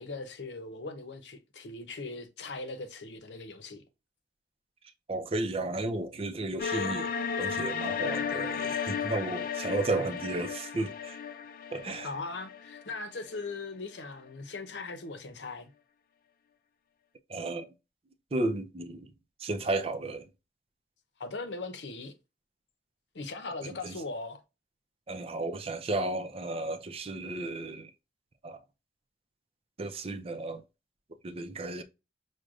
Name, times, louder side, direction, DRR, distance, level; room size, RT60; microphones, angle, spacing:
voice 1, 0.0-3.8 11.8-15.7 21.2-22.1 23.1-24.4, left 3 dB, 90° left, 0.7 m, -39 dB
voice 2, 5.1-7.1 7.4-11.2 11.7-12.1 17.3-17.7 18.3-19.1 19.4-20.3 23.6-23.9 25.1-27.9 28.4-28.6 29.8-30.6 31.2-31.8, right 2 dB, 35° right, 0.5 m, -33 dB
sound 1, 6.6-13.6, left 6 dB, 55° left, 0.4 m, -34 dB
6.2 x 2.2 x 2.4 m
head